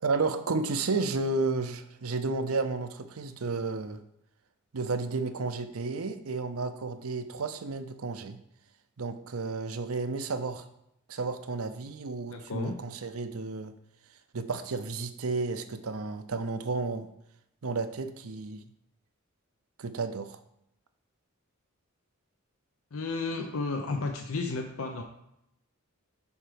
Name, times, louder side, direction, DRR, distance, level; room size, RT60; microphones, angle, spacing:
voice 1, 0.0-4.0 4.7-8.4 9.0-10.6 11.1-13.7 14.3-17.1 17.6-18.6 19.8-20.4, right 3 dB, 90° right, 10 dB, 0.6 m, -32 dB
voice 2, 12.3-12.8 22.9-25.0, left 3 dB, 75° left, 4 dB, 0.7 m, -33 dB
7.2 x 4.6 x 5.1 m, 0.78 s
head